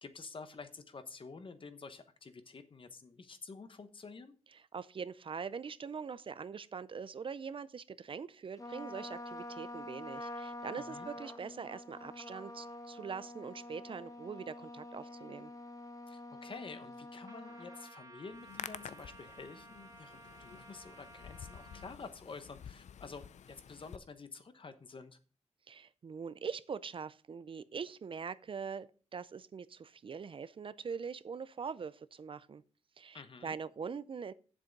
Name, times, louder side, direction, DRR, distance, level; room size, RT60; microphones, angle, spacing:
voice 1, 0.0-4.3 10.8-11.1 16.1-25.2 33.1-33.6, left 4 dB, 45° left, 1.1 m, -49 dB
voice 2, 4.7-15.5 25.7-32.6 33.0-34.3, right 6 dB, 50° right, 0.4 m, -43 dB
Trumpet, 8.6-17.9, left 2 dB, 30° left, 1.1 m, -47 dB
Trumpet 2, 17.2-21.9, right 2 dB, 30° right, 2.0 m, -55 dB
Hands, 18.3-24.0, left 8 dB, 85° left, 0.5 m, -50 dB
7.5 x 7.4 x 5.2 m
wide cardioid pair, 100°, 12 cm